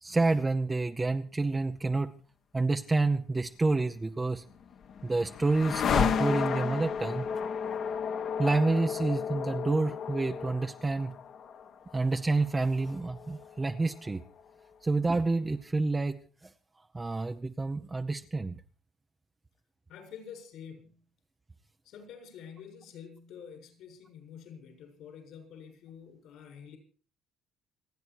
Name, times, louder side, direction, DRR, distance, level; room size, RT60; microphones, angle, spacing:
voice 1, 0.0-2.1 2.5-4.4 5.0-7.3 8.4-11.2 11.9-14.2 14.8-16.2 16.9-18.5, right 3 dB, 15° right, 5 dB, 0.8 m, -28 dB
sound 1, 4.3-14.4, left 7 dB, 55° left, 1.5 m, -33 dB
voice 2, 19.9-21.1 21.8-26.8, left 7 dB, 75° left, 4 dB, 7.1 m, -48 dB
28.0 x 9.6 x 4.7 m, 0.40 s
cardioid pair, 125°, 0 cm